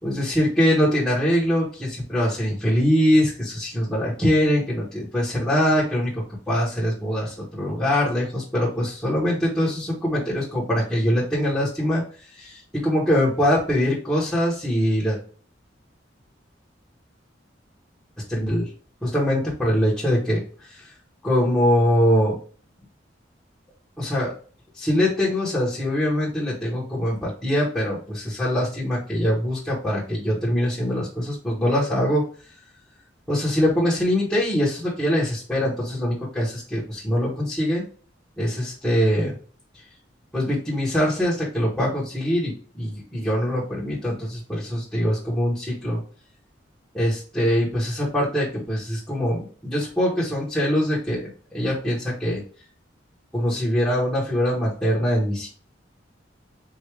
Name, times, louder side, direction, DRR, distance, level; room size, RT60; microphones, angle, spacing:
voice 1, 0.0-12.0 12.3-15.2 18.3-18.7 19.0-20.4 20.7-20.8 21.2-22.4 24.0-24.3 24.8-32.3 33.3-37.8 38.4-39.3 40.3-46.0 46.9-51.2 51.5-52.4 53.3-55.5, equal, 5° left, -9 dB, 1.5 m, -23 dB
4.7 x 2.9 x 3.1 m, 0.40 s
head